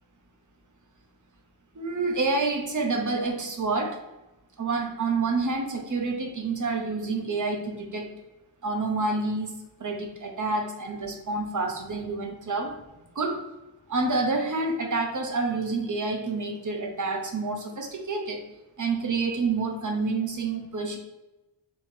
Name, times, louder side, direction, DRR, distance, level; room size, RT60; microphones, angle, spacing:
voice 1, 1.7-4.0 4.6-8.1 8.6-12.7 13.1-13.4 13.9-18.4 18.8-21.0, right 3 dB, 40° right, 2 dB, 0.9 m, -28 dB
4.4 x 3.8 x 2.7 m, 1.0 s
wide cardioid pair, 105°, 48 cm